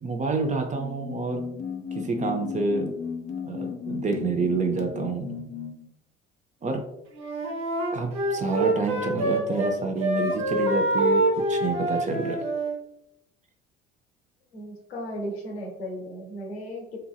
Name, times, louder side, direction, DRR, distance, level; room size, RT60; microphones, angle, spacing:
voice 1, 0.0-1.4 1.9-2.9 3.4-5.4 6.6-6.8 7.9-12.4, right 3 dB, 25° right, 5 dB, 0.5 m, -28 dB
sound 1, 0.7-5.9, left 6 dB, 25° left, 0.5 m, -35 dB
Wind instrument woodwind instrument, 7.1-9.7 10.0-12.8, right 1 dB, 60° right, 0.8 m, -25 dB
voice 2, 14.5-17.0, equal, 85° left, 0 dB, 0.7 m, -35 dB
2.9 x 2.7 x 2.3 m, 0.82 s
figure-of-eight pair, 55°, 30 cm